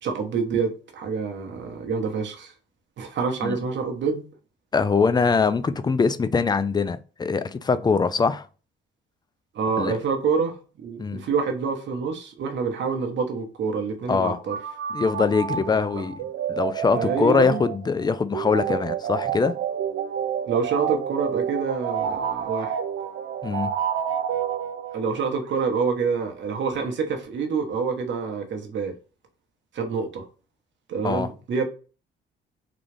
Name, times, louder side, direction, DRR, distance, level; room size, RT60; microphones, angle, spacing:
voice 1, 0.0-2.5 3.0-4.2 9.5-14.5 15.9-16.0 16.9-17.7 20.5-22.8 24.9-28.9 29.7-30.3 30.9-31.7, right 5 dB, 65° right, 1.1 m, -27 dB
voice 2, 4.7-8.5 9.8-10.0 11.0-11.2 14.1-14.4 14.9-16.1 16.5-19.5 23.4-23.7 31.0-31.3, left 5 dB, 20° left, 0.4 m, -23 dB
sound 1, 14.5-25.2, right 8 dB, 85° right, 0.5 m, -29 dB
3.9 x 2.4 x 3.2 m
cardioid pair, 90°, 20 cm